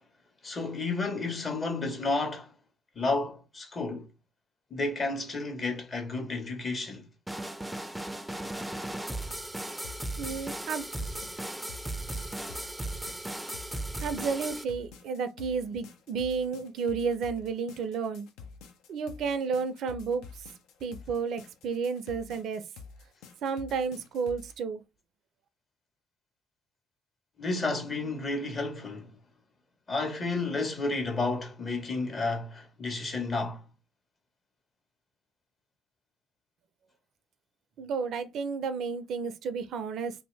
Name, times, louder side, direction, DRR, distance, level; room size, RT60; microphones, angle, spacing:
voice 1, 0.4-2.5 2.9-4.1 4.7-7.1 27.4-29.1 29.9-33.6, left 3 dB, 40° left, 1.2 m, -31 dB
sound 1, 7.3-14.6, right 1 dB, 5° right, 0.4 m, -36 dB
sound 2, 9.8-24.5, left 5 dB, 75° left, 0.5 m, -49 dB
voice 2, 10.2-10.9 14.0-18.3 18.9-20.2 20.8-22.6 23.4-24.8 37.8-40.1, right 5 dB, 65° right, 0.4 m, -32 dB
2.7 x 2.5 x 3.2 m
hypercardioid pair, 50°, 0 cm